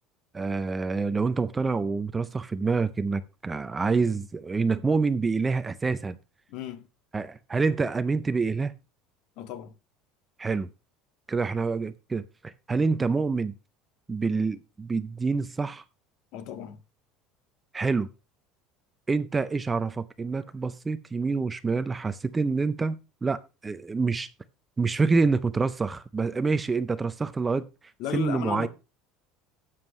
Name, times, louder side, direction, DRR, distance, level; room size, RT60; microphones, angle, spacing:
voice 1, 0.3-6.2 7.1-8.7 10.4-10.7 11.3-13.5 14.1-15.8 17.7-18.1 19.1-24.3 24.8-27.7 28.1-28.7, right 4 dB, 15° right, 0.5 m, -27 dB
voice 2, 6.5-6.9 9.4-9.7 16.3-16.8 28.0-28.7, left 9 dB, 55° left, 1.7 m, -34 dB
13.0 x 9.1 x 3.1 m
cardioid pair, 165°, 0 cm